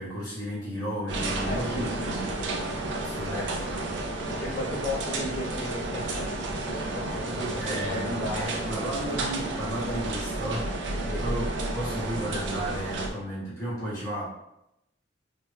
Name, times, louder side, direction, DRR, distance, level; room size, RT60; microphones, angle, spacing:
voice 1, 0.0-2.2 3.0-4.0 7.6-14.3, right 1 dB, 15° left, -10 dB, 1.5 m, -34 dB
sound 1, 1.1-13.1, right 2 dB, 70° right, 0.5 m, -32 dB
voice 2, 1.4-2.7 3.2-3.4 4.3-8.8 11.0-11.3, left 1 dB, 60° left, -7 dB, 0.7 m, -35 dB
3.2 x 2.8 x 2.2 m, 0.83 s
head